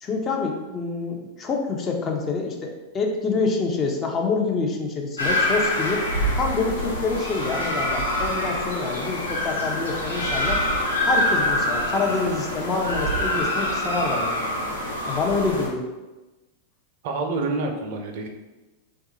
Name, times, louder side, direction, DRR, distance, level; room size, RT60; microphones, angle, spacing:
voice 1, 0.0-10.6 11.0-14.4 15.1-15.8, left 4 dB, 25° left, 1 dB, 0.4 m, -26 dB
sound 1, 5.2-15.7, left 1 dB, 80° left, 0.6 m, -25 dB
voice 2, 17.0-18.3, right 3 dB, 50° right, 3 dB, 0.4 m, -27 dB
3.1 x 2.3 x 2.7 m, 1.1 s
figure-of-eight pair, 90°, 0 cm